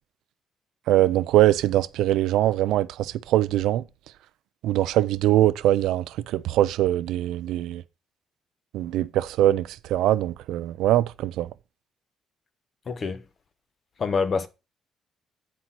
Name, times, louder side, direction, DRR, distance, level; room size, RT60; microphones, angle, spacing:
voice 1, 0.9-3.8 4.6-6.0 6.3-7.8 8.7-11.5, right 13 dB, 90° right, 0.5 m, -22 dB
voice 2, 12.9-13.2 14.0-14.5, left 5 dB, 45° left, 1.1 m, -26 dB
9.5 x 4.3 x 5.9 m
cardioid pair, 90°, 0 cm